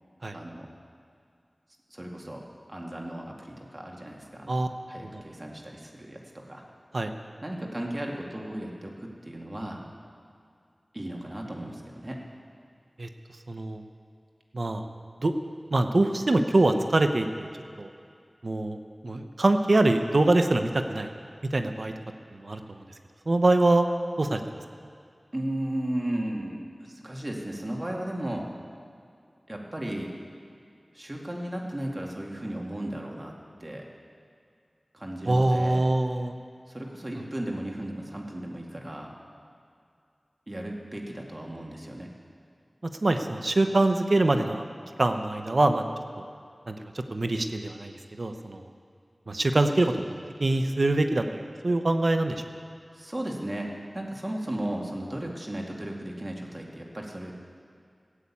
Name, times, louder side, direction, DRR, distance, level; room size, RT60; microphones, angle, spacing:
voice 1, 0.3-0.7 1.9-2.4 2.7-6.6 7.4-9.8 10.9-12.2 25.3-28.4 29.5-30.1 30.9-33.3 33.6-33.8 34.9-35.9 36.7-39.1 40.5-42.1 52.9-53.7 53.9-57.3, right 1 dB, 35° right, 0 dB, 2.3 m, -35 dB
voice 2, 13.5-13.8 14.5-14.8 15.2-15.3 15.7-17.5 17.8-17.9 18.4-18.8 19.0-21.1 21.5-21.9 22.3-22.8 23.3-23.9 24.2-24.4 35.3-36.3 43.0-44.6 45.0-45.8 46.2-46.3 46.7-48.6 49.3-50.1 50.4-52.4, right 2 dB, 70° right, 7 dB, 0.8 m, -24 dB
14.5 x 8.3 x 8.6 m, 2.3 s
wide cardioid pair, 45°, 0 cm